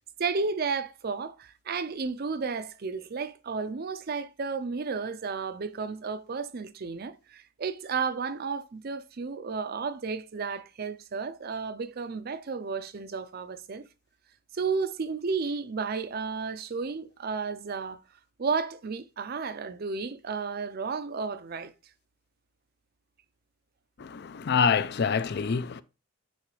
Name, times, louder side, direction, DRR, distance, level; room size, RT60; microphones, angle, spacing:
voice 1, 0.2-13.9 14.5-18.0 18.4-21.7, right 5 dB, 45° right, 0.5 m, -32 dB
voice 2, 24.0-25.8, left 6 dB, 50° left, 0.4 m, -26 dB
9.7 x 3.2 x 3.1 m
head